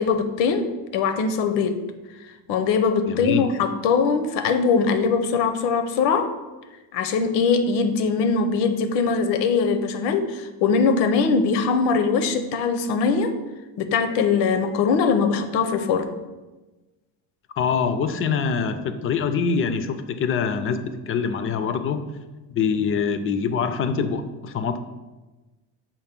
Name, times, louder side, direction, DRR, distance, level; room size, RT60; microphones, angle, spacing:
voice 1, 0.0-1.8 2.5-6.3 6.9-13.3 13.8-16.1, left 5 dB, 80° left, 9 dB, 0.7 m, -21 dB
voice 2, 3.1-3.4 17.6-22.0 22.5-24.8, left 6 dB, 30° left, 10 dB, 0.4 m, -24 dB
7.0 x 2.6 x 5.2 m, 1.2 s
cardioid pair, 115°, 42 cm